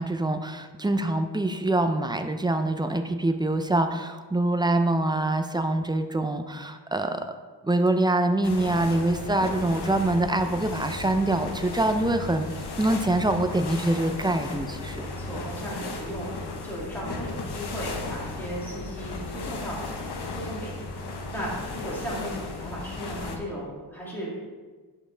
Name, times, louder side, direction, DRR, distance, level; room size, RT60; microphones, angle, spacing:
voice 1, 0.0-7.3 7.6-12.5 12.8-15.1, right 2 dB, 10° right, 7 dB, 0.3 m, -25 dB
sound 1, 8.4-23.4, left 3 dB, 65° left, 1.0 m, -35 dB
voice 2, 14.9-19.9 20.3-24.3, equal, 5° left, -6 dB, 2.2 m, -36 dB
11.0 x 5.4 x 3.3 m, 1.4 s
wide cardioid pair, 165°, 42 cm